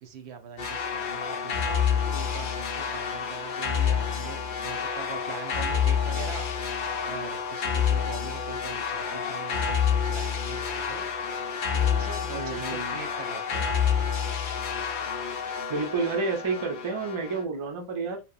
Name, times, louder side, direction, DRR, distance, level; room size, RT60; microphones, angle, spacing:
voice 1, 0.0-6.5 7.0-11.1 11.7-14.1, right 7 dB, 80° right, 0.8 m, -42 dB
sound 1, 0.6-17.4, left 7 dB, 60° left, 0.6 m, -28 dB
voice 2, 12.3-13.0 15.7-18.2, right 4 dB, 40° right, 0.5 m, -30 dB
2.8 x 2.1 x 2.3 m
omnidirectional pair, 1.1 m